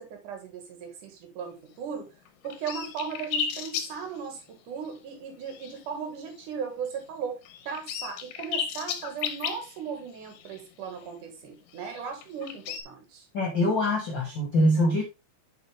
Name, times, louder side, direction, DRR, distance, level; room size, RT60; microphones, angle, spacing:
voice 1, 0.0-2.1 2.4-7.4 7.7-13.3, right 6 dB, 70° right, 5 dB, 3.0 m, -37 dB
sound 1, 2.0-2.1 2.3-4.5 4.9-5.0 5.4-5.9 6.3-6.5 6.9-7.0 7.5-11.1 11.8-12.8, left 8 dB, 90° left, 2.4 m, -35 dB
voice 2, 13.3-15.0, left 1 dB, 60° left, 0 dB, 1.2 m, -24 dB
6.9 x 5.7 x 3.2 m, 0.26 s
omnidirectional pair, 3.8 m